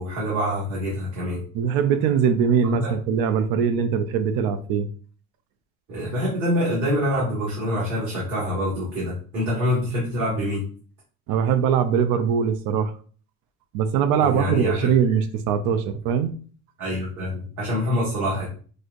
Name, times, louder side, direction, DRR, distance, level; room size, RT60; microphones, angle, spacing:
voice 1, 0.0-1.4 2.8-3.0 5.9-10.6 14.2-15.2 16.8-18.5, equal, 55° right, -7 dB, 1.8 m, -26 dB
voice 2, 1.5-4.9 10.2-10.3 11.3-12.9 13.7-16.3, right 7 dB, 70° right, 9 dB, 0.6 m, -22 dB
6.2 x 2.6 x 2.5 m, 0.42 s
cardioid pair, 165°, 37 cm